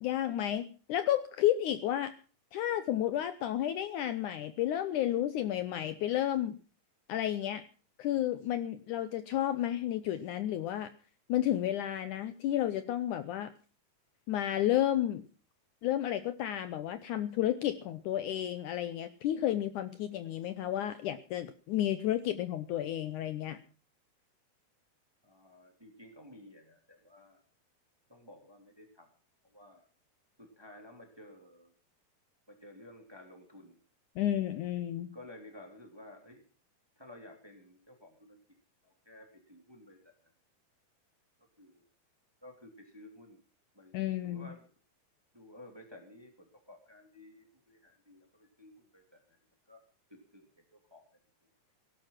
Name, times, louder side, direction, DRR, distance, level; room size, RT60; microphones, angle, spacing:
voice 1, 0.0-2.1 2.5-6.6 7.1-7.6 8.0-10.9 11.3-13.5 14.3-15.2 15.8-23.6 34.2-35.1 43.9-44.5, left 12 dB, 70° left, 11 dB, 2.0 m, -32 dB
voice 2, 25.2-27.4 28.1-29.1 29.4-29.9 30.4-31.7 32.5-33.8 35.1-36.4 37.0-38.4 38.8-40.1 41.6-41.8 42.4-43.4 43.7-43.9 44.2-44.6 45.3-49.4 49.7-49.8 50.1-51.0 51.4-51.5, left 1 dB, 5° right, 3 dB, 2.7 m, -54 dB
17.5 x 12.0 x 5.8 m, 0.38 s
omnidirectional pair, 4.2 m